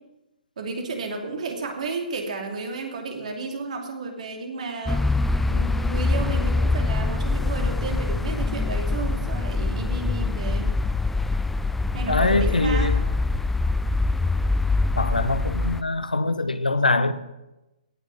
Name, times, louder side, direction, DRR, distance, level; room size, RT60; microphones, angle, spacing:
voice 1, 0.6-5.1 5.5-10.7 11.9-13.0, right 3 dB, 55° right, 2.6 m, -32 dB
sound 1, 4.9-15.8, left 3 dB, 5° left, 0.4 m, -24 dB
voice 2, 12.1-12.9 15.0-17.1, left 3 dB, 85° left, 0.9 m, -23 dB
17.5 x 6.5 x 5.4 m
figure-of-eight pair, 130°, 4 cm